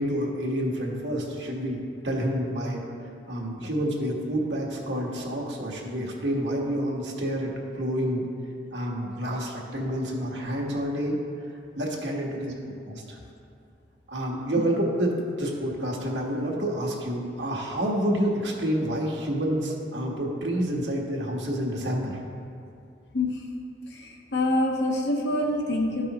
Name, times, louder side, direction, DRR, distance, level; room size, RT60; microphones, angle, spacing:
voice 1, 0.0-2.8 3.3-8.3 8.7-11.1 11.8-12.5 12.9-13.2 14.1-22.1, equal, 85° right, -2 dB, 1.4 m, -28 dB
voice 2, 24.3-26.1, left 1 dB, 75° left, 1 dB, 1.0 m, -25 dB
13.5 x 5.4 x 2.9 m, 2.4 s
head